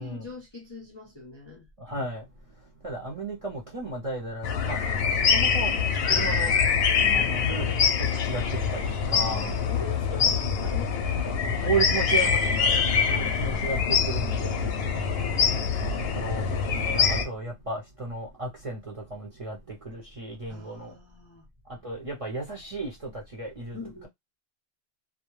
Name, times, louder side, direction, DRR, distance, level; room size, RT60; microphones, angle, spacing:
voice 1, 0.0-1.7 7.0-7.5 9.1-11.5 20.5-21.5 23.7-24.1, left 2 dB, 30° left, 0.5 m, -43 dB
voice 2, 1.8-9.5 11.5-21.0 21.6-24.1, right 3 dB, 40° right, 0.6 m, -35 dB
sound 1, 4.4-17.2, left 6 dB, 65° left, 0.7 m, -24 dB
2.2 x 2.2 x 3.0 m
omnidirectional pair, 1.2 m